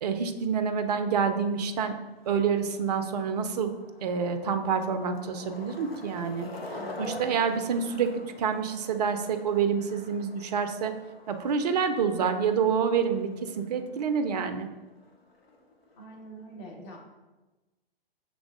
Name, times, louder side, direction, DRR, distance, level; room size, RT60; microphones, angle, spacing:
voice 1, 0.0-1.9 2.3-3.7 4.0-6.5 7.0-10.9 11.3-14.7, right 6 dB, 45° right, 8 dB, 0.4 m, -27 dB
Skateboard, 1.1-16.2, left 2 dB, 75° left, 0.8 m, -47 dB
voice 2, 6.7-7.8 16.0-17.0, equal, 30° left, -1 dB, 1.0 m, -45 dB
6.0 x 3.4 x 2.5 m, 1.1 s
figure-of-eight pair, 115°, 30 cm